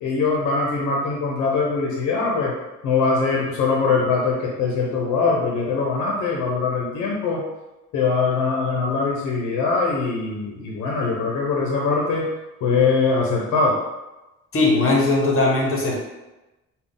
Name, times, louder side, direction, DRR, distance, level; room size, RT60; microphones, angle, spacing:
voice 1, 0.0-2.5 2.8-7.4 7.9-12.3 12.6-13.8, left 4 dB, 85° left, -2 dB, 0.7 m, -22 dB
voice 2, 14.5-16.0, left 2 dB, 45° left, -1 dB, 1.0 m, -19 dB
3.6 x 2.3 x 3.6 m, 1.0 s
cardioid pair, 90°, 30 cm